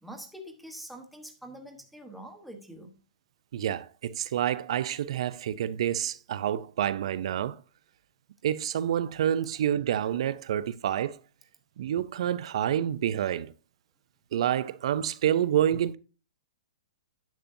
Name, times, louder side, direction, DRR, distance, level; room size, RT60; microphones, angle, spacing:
voice 1, 0.0-2.9, equal, ahead, 1.0 m, -45 dB
voice 2, 3.5-7.6 8.4-11.2 11.8-13.5 14.3-16.0, right 10 dB, 45° right, 0.5 m, -28 dB
10.5 x 7.3 x 2.6 m
hypercardioid pair, 170°, 4 cm